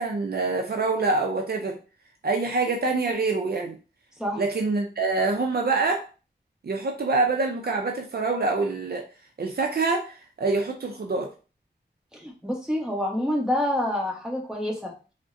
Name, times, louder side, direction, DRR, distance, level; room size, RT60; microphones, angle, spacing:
voice 1, 0.0-1.8 2.2-3.7 4.4-6.0 6.6-9.0 9.4-11.3, right 3 dB, 60° right, 2 dB, 0.5 m, -25 dB
voice 2, 12.1-14.9, left 1 dB, 5° right, -2 dB, 1.1 m, -27 dB
3.5 x 2.2 x 2.6 m, 0.34 s
cardioid pair, 55°, 18 cm